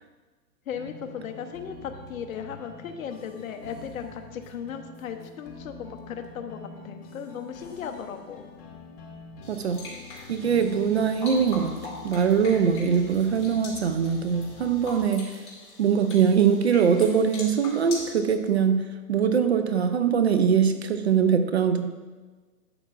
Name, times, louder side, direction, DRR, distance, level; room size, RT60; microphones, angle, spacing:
voice 1, 0.7-8.4, left 7 dB, 55° left, 6 dB, 0.9 m, -37 dB
sound 1, 0.7-15.1, left 4 dB, 40° left, 1.5 m, -45 dB
sound 2, 9.4-18.1, left 2 dB, 10° left, 2.2 m, -42 dB
voice 2, 9.5-9.8 10.3-11.8 12.0-15.3 15.8-21.8, right 7 dB, 45° right, 9 dB, 0.4 m, -22 dB
11.5 x 8.0 x 2.4 m, 1.4 s
hypercardioid pair, 150°, 49 cm